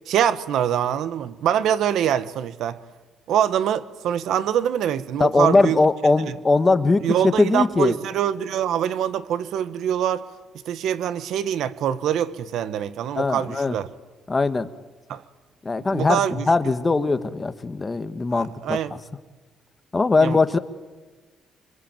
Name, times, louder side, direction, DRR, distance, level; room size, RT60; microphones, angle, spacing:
voice 1, 0.1-2.8 3.3-5.8 6.2-6.4 7.0-10.2 10.6-13.9 15.1-15.2 15.8-16.5 18.3-18.9 20.2-20.4, right 9 dB, 75° right, 1.3 m, -24 dB
voice 2, 5.2-7.9 13.2-13.8 14.3-14.7 15.6-18.8 19.9-20.6, left 3 dB, 25° left, 1.5 m, -20 dB
25.5 x 25.0 x 9.1 m
cardioid pair, 100°, 0 cm